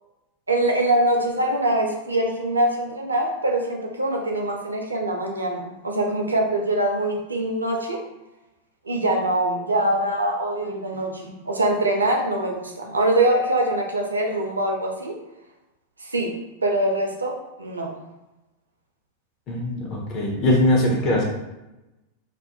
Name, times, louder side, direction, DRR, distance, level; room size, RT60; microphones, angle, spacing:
voice 1, 0.5-8.0 8.9-15.2 16.0-17.9, right 1 dB, 80° right, 1 dB, 0.4 m, -23 dB
voice 2, 19.5-21.2, left 1 dB, 35° left, -1 dB, 0.5 m, -21 dB
2.4 x 2.1 x 2.8 m, 0.99 s
figure-of-eight pair, 90°, 0 cm